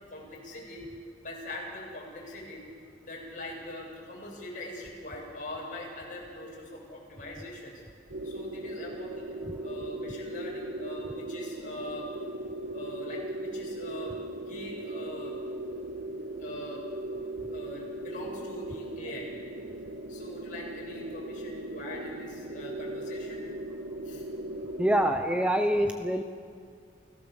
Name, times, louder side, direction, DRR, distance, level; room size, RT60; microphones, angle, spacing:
voice 1, 0.1-0.8 1.2-2.7 3.0-7.8 8.2-12.1 12.7-14.1 14.5-15.3 16.4-16.8 17.5-19.3 20.1-23.4 24.0-24.2, left 1 dB, 45° left, -3 dB, 7.4 m, -42 dB
sound 1, 8.1-25.1, right 1 dB, 90° right, 1.6 m, -38 dB
voice 2, 24.8-26.2, equal, 5° right, 5 dB, 0.9 m, -25 dB
29.0 x 17.0 x 7.2 m, 2.2 s
head